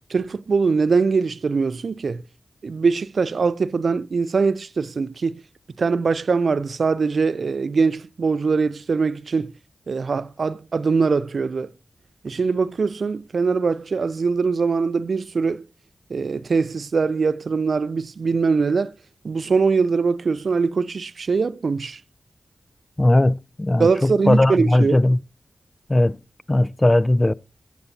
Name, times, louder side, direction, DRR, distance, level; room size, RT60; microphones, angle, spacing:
voice 1, 0.1-2.2 2.6-5.4 5.8-9.5 9.9-11.7 12.2-15.6 16.1-18.9 19.2-22.0 23.8-25.0, right 4 dB, 70° right, 0.4 m, -22 dB
voice 2, 23.0-25.2 25.9-26.2 26.5-27.3, left 1 dB, 25° left, 0.3 m, -18 dB
14.0 x 6.9 x 2.7 m
cardioid pair, 40°, 0 cm